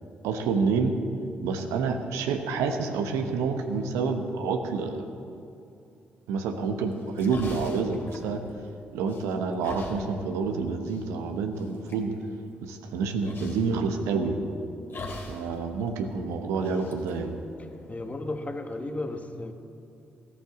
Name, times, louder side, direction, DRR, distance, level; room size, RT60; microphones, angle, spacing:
voice 1, 0.2-0.9 1.4-5.1 6.3-8.4 8.9-12.1 12.6-14.4 15.3-17.4, right 5 dB, 75° right, 6 dB, 1.0 m, -28 dB
sound 1, 6.9-8.8 9.1-10.0 10.9-11.0 11.6-12.0 13.2-13.7 14.9-15.5 15.8-15.9 16.6-18.1, left 2 dB, 50° left, 2.6 m, -41 dB
voice 2, 17.9-19.5, left 2 dB, 30° left, 6 dB, 1.4 m, -34 dB
14.5 x 8.5 x 7.1 m, 2.6 s
hypercardioid pair, 40°, 5 cm